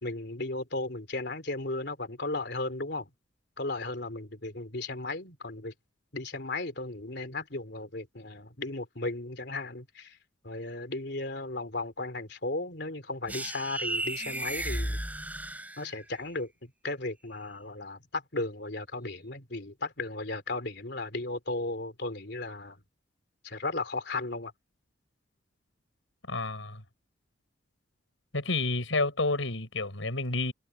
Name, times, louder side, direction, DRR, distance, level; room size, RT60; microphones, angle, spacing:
voice 1, 0.0-3.1 3.6-5.7 6.1-10.2 10.4-15.0 15.8-22.8 23.4-24.5, left 2 dB, 60° left, 3.5 m, -35 dB
sound 1, 13.3-16.2, right 1 dB, 10° right, 5.6 m, -34 dB
voice 2, 26.3-26.8 28.3-30.5, left 3 dB, 85° left, 5.7 m, -30 dB
head